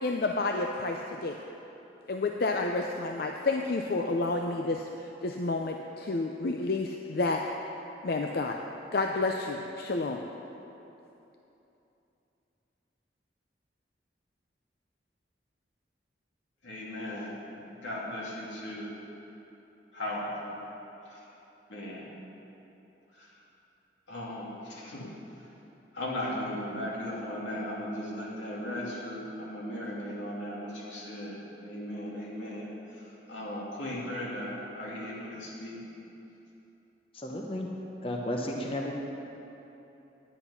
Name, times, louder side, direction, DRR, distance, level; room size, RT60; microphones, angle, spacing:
voice 1, 0.0-1.4 2.1-7.4 8.0-8.6 8.9-10.3, left 3 dB, 55° left, 3 dB, 0.5 m, -30 dB
voice 2, 16.6-18.9 19.9-20.6 21.0-21.3 21.7-22.0 23.1-23.4 24.1-25.1 25.4-25.5 25.9-35.8, left 1 dB, 90° left, -5 dB, 2.8 m, -37 dB
voice 3, 37.1-37.7 38.0-38.9, left 1 dB, 30° left, 0 dB, 0.8 m, -33 dB
10.5 x 10.0 x 5.7 m, 3.0 s
head